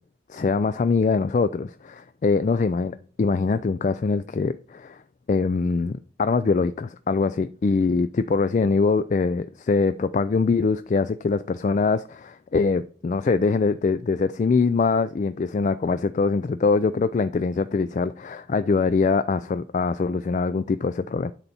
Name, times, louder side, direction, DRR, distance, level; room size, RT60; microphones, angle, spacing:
voice 1, 0.3-5.0 5.3-21.3, left 4 dB, 40° left, 0.3 m, -23 dB
10.5 x 4.1 x 4.3 m
head